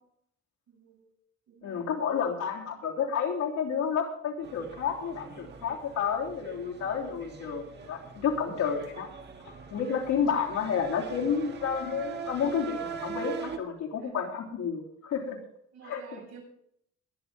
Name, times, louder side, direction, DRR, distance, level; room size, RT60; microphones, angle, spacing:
voice 1, 0.7-1.1 1.5-2.7 14.0-14.2 15.7-16.4, right 6 dB, 70° right, 0 dB, 6.6 m, -52 dB
voice 2, 1.6-9.1 9.7-15.4 15.8-16.2, left 6 dB, 80° left, -1 dB, 3.4 m, -30 dB
sound 1, 4.4-13.6, right 6 dB, 35° right, 1.6 m, -42 dB
21.5 x 9.5 x 3.8 m, 0.72 s
cardioid pair, 170°, 29 cm